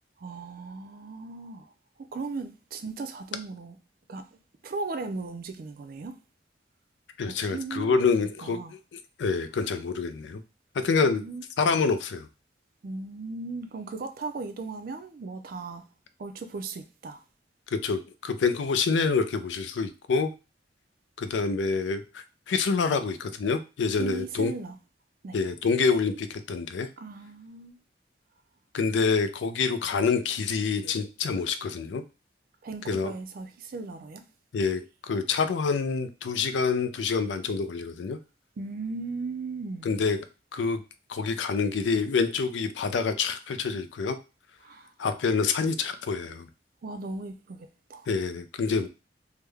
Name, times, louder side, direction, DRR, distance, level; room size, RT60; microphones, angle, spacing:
voice 1, 0.2-1.7 2.1-3.8 4.1-4.3 4.6-6.1 7.2-8.0 8.4-8.7 11.0-11.4 12.8-15.8 16.2-17.2 24.0-24.8 25.2-25.4 27.0-27.8 32.6-34.2 38.6-40.0 44.6-44.9 46.8-48.1, right 3 dB, 55° right, 0.4 m, -37 dB
voice 2, 7.2-8.6 9.2-10.4 10.7-11.2 11.6-12.3 17.7-20.3 21.2-24.5 25.3-26.9 28.7-32.0 32.9-33.1 34.5-38.2 39.8-40.3 40.5-40.8 41.1-44.2 45.0-46.5 48.1-48.9, left 5 dB, 90° left, 0.4 m, -27 dB
3.4 x 2.1 x 3.3 m
head